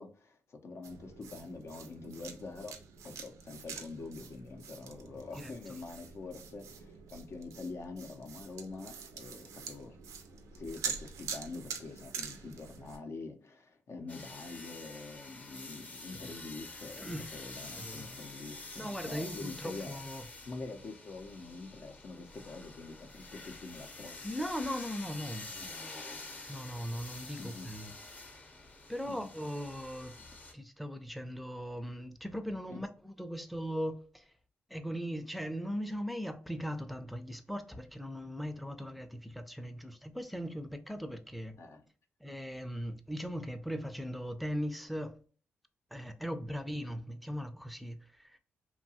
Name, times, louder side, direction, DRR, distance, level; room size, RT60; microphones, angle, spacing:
voice 1, 0.0-2.8 3.0-10.0 10.5-20.0 20.5-24.3 25.4-25.7 27.4-27.7 29.0-29.3 32.7-32.8 41.6-41.8, left 3 dB, 60° left, 0.6 m, -45 dB
sound 1, 0.8-13.0, right 6 dB, 85° right, 0.4 m, -45 dB
sound 2, 14.1-30.5, left 2 dB, 30° left, 0.8 m, -47 dB
voice 2, 17.0-17.3 17.8-18.1 18.8-20.2 24.2-25.5 26.5-27.9 28.9-30.2 30.5-34.3 34.7-41.5 42.2-45.2 45.9-48.4, equal, ahead, 0.5 m, -39 dB
2.8 x 2.2 x 2.7 m
supercardioid pair, 55°, 5 cm